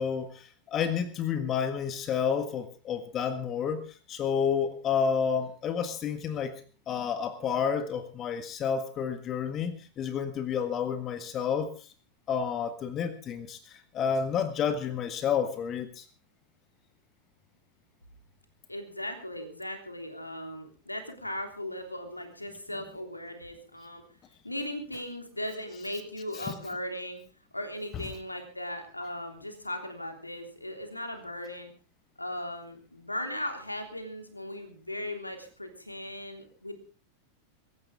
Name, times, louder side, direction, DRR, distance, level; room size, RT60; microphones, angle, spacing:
voice 1, 0.0-3.8 4.1-6.6 6.9-11.9 12.3-16.0 27.9-28.0, left 7 dB, 30° left, 10 dB, 1.7 m, -30 dB
voice 2, 18.7-24.0 24.4-27.2 27.5-31.7 32.2-36.7, left 1 dB, 85° left, 5 dB, 3.3 m, -38 dB
24.0 x 14.5 x 3.7 m, 0.35 s
figure-of-eight pair, 90°, 0 cm